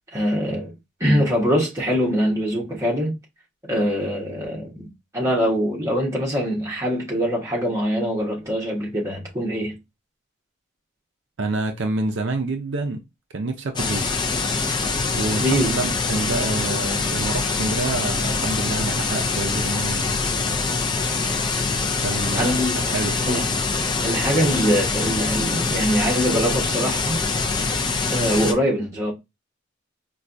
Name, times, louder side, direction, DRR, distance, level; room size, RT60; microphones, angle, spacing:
voice 1, 0.1-0.7 1.0-3.1 3.7-4.9 5.1-9.8 15.4-15.7 22.4-22.8 23.3-23.4 24.0-27.2 28.1-29.1, equal, 15° right, 1.0 m, -23 dB
voice 2, 11.4-13.0 13.3-14.1 15.1-20.2 22.0-23.5, right 3 dB, 60° right, 0.5 m, -28 dB
sound 1, 13.8-28.5, left 4 dB, 20° left, 0.3 m, -24 dB
4.3 x 2.3 x 2.5 m
head